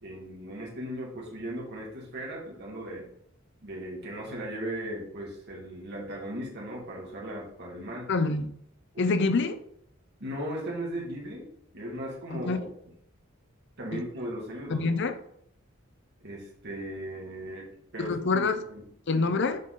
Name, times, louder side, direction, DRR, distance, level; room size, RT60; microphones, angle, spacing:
voice 1, 0.0-3.1 3.6-8.1 10.2-12.6 13.8-14.9 16.2-18.8, right 1 dB, 55° right, -3 dB, 2.0 m, -37 dB
voice 2, 8.1-8.5 9.0-9.6 12.3-12.6 13.9-14.0 14.7-15.1 18.0-18.6 19.1-19.6, left 3 dB, 60° left, 10 dB, 0.6 m, -26 dB
7.5 x 4.0 x 3.8 m, 0.70 s
head